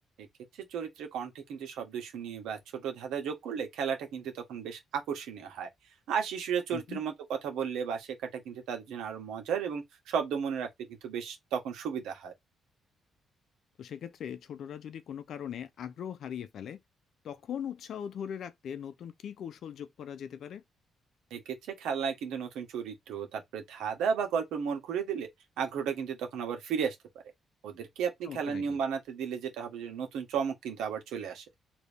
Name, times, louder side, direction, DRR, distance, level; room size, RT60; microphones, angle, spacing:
voice 1, 0.7-5.7 6.1-7.1 7.4-12.3 21.3-21.4 21.8-25.3 25.6-26.9 27.6-31.4, right 7 dB, 85° right, 1.2 m, -34 dB
voice 2, 6.7-7.0 13.8-16.8 17.2-20.6 28.2-28.8, left 8 dB, 65° left, 0.5 m, -40 dB
2.9 x 2.7 x 3.4 m
cardioid pair, 90°, 0 cm